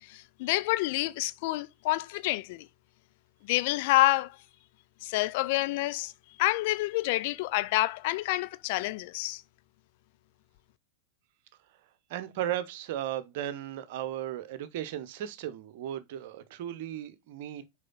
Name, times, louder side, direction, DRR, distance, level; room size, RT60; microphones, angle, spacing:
voice 1, 0.0-2.7 3.4-4.4 5.0-6.1 6.4-9.4, left 18 dB, 50° left, 0.4 m, -28 dB
voice 2, 12.1-17.6, right 11 dB, 50° right, 1.0 m, -36 dB
6.6 x 4.8 x 3.9 m
figure-of-eight pair, 90°, 0 cm